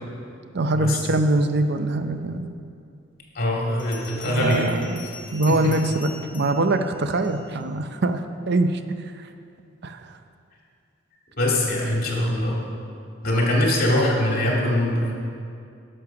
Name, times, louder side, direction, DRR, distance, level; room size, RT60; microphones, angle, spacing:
voice 1, 0.5-2.5 4.3-5.0 5.3-8.8 9.8-10.1, right 2 dB, 60° right, 8 dB, 0.6 m, -23 dB
Bell, 2.6-2.7 3.8-7.7, left 4 dB, 25° left, 1.1 m, -43 dB
voice 2, 3.3-4.7 5.5-5.7 11.4-12.6 13.2-15.1, left 1 dB, 50° left, -3 dB, 2.3 m, -22 dB
10.5 x 6.7 x 5.9 m, 2.4 s
head